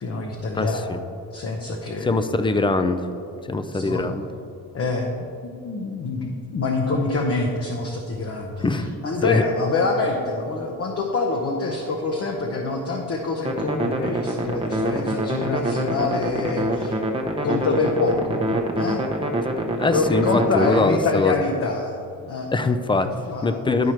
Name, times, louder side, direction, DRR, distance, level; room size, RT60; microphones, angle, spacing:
voice 1, 0.0-0.9 1.3-2.1 3.7-4.0 4.7-17.0 17.4-18.5 18.7-19.0 19.9-22.0 22.2-22.5 22.9-23.6, left 3 dB, 40° left, 1 dB, 0.9 m, -26 dB
voice 2, 0.5-1.0 2.0-3.0 3.5-4.3 8.6-8.9 9.2-9.4 19.8-21.3 22.5-23.1 23.4-23.9, left 3 dB, 15° left, 9 dB, 0.4 m, -22 dB
sound 1, 13.4-20.8, right 1 dB, 15° right, 0.8 m, -25 dB
11.0 x 4.7 x 4.4 m, 2.6 s
cardioid pair, 105°, 36 cm